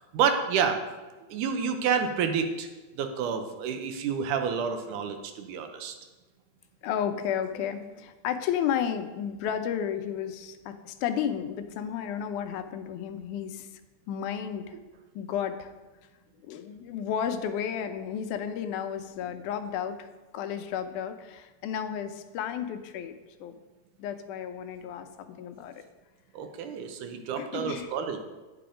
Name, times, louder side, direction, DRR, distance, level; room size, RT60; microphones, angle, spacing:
voice 1, 0.1-0.8 1.3-2.7 3.0-5.9 26.4-28.2, right 7 dB, 85° right, 6 dB, 2.3 m, -29 dB
voice 2, 6.8-13.7 14.1-14.8 15.2-15.7 16.4-20.1 20.3-23.6 24.0-25.8 27.4-27.9, left 8 dB, 85° left, 9 dB, 2.1 m, -32 dB
9.3 x 6.0 x 4.9 m, 1.2 s
omnidirectional pair, 3.5 m